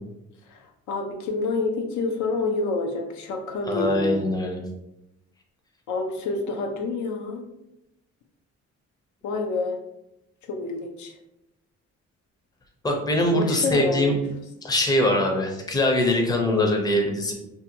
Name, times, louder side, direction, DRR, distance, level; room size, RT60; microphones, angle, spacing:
voice 1, 0.5-4.2 5.9-7.5 9.2-9.8 10.5-11.2 13.3-14.2 16.5-16.7, left 3 dB, 70° left, 4 dB, 0.5 m, -28 dB
voice 2, 3.7-4.6 12.8-14.2 14.6-17.3, left 1 dB, 15° left, 1 dB, 0.5 m, -22 dB
2.7 x 2.2 x 2.7 m, 0.86 s
cardioid pair, 90°, 30 cm